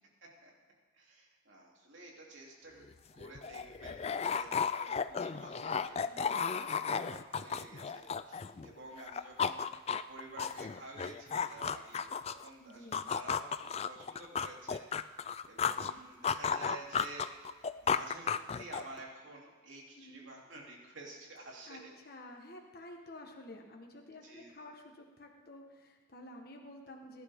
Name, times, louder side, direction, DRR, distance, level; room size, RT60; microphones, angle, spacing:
voice 1, 0.2-0.5 0.9-2.9 3.1-21.9 24.2-24.5, right 2 dB, 70° right, -2 dB, 3.2 m, -51 dB
sound 1, 2.8-2.9 3.2-8.7 9.0-12.5 12.9-15.9 16.2-19.0, left 6 dB, 30° left, 0.3 m, -34 dB
voice 2, 6.0-6.5 12.6-13.0 15.8-15.9 20.0-20.3 21.7-21.8 22.0-27.2, left 1 dB, 50° left, 1 dB, 1.4 m, -51 dB
21.5 x 11.0 x 3.7 m, 1.5 s
head